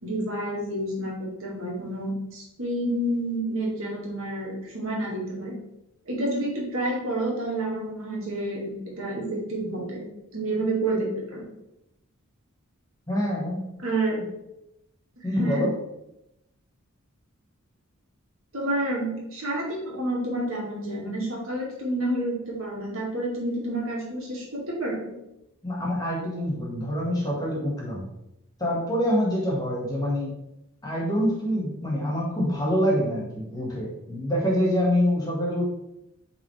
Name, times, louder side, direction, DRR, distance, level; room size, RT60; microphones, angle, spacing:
voice 1, 0.0-5.5 6.1-10.0 10.3-11.5 13.8-14.2 15.2-15.7 18.5-25.1, right 1 dB, 70° right, -3 dB, 2.1 m, -29 dB
voice 2, 13.1-13.6 15.2-15.7 25.6-28.1 28.6-30.3 30.8-35.7, equal, 20° left, -4 dB, 1.9 m, -26 dB
8.5 x 3.7 x 3.3 m, 0.86 s
head